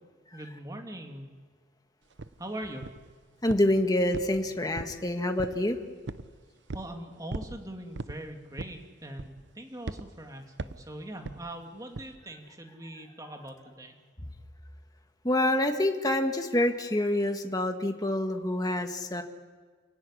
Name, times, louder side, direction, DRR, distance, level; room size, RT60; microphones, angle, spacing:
voice 1, 0.3-1.3 2.4-2.9 6.7-13.9, right 1 dB, 20° right, 3 dB, 2.6 m, -41 dB
sound 1, 2.2-2.3 2.8-3.1 3.5-3.8 4.1-5.0 5.4-5.7 6.1-6.3 6.7-6.9 7.3-7.6 7.9-8.2 8.6-8.8 9.2-9.5 9.9-10.1 10.6-10.8 11.2-11.4 11.9-12.1, right 2 dB, 80° right, 0.8 m, -38 dB
voice 2, 3.4-5.8 15.2-19.2, left 1 dB, 20° left, 5 dB, 1.8 m, -27 dB
28.5 x 17.0 x 10.0 m, 1.5 s
head